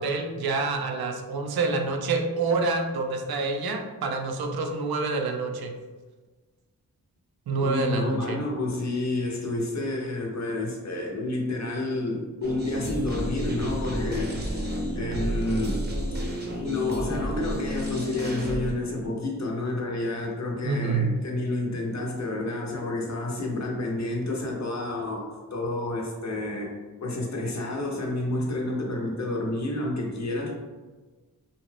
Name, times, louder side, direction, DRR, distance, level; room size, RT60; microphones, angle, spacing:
voice 1, 0.0-5.7 7.5-8.4 20.6-21.2, right 3 dB, 80° right, 4 dB, 0.5 m, -27 dB
voice 2, 7.6-15.9 16.6-26.7 27.0-30.5, left 2 dB, 50° left, -1 dB, 0.7 m, -30 dB
sound 1, 12.4-18.7, equal, 25° right, 0.7 m, -31 dB
2.6 x 2.3 x 3.2 m, 1.3 s
cardioid pair, 50°, 36 cm